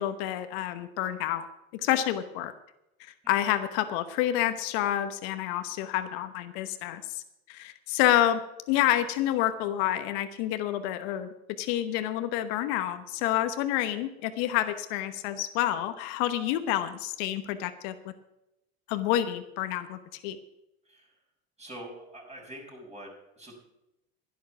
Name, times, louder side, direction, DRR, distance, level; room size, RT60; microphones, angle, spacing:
voice 1, 0.0-1.5 1.8-2.5 3.3-7.0 7.5-8.4 8.7-11.3 11.6-17.9 18.9-20.0 20.2-20.4, left 12 dB, 65° left, 10 dB, 1.1 m, -28 dB
voice 2, 21.6-23.5, right 1 dB, 20° right, -1 dB, 6.2 m, -45 dB
11.0 x 10.5 x 5.9 m, 0.89 s
hypercardioid pair, 70°, 34 cm